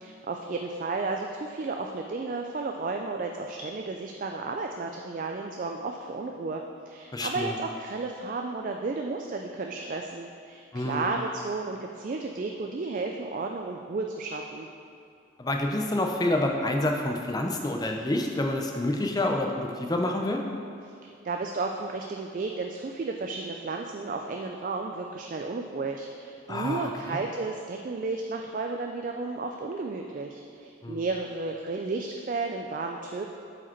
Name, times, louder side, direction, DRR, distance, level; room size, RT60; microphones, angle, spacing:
voice 1, 0.0-14.7 21.0-33.2, right 3 dB, 40° right, 3 dB, 0.3 m, -33 dB
voice 2, 7.1-7.5 10.7-11.1 15.4-20.4 26.5-27.2 30.8-31.0, left 1 dB, 20° left, 2 dB, 0.5 m, -28 dB
7.9 x 5.0 x 4.4 m, 2.5 s
head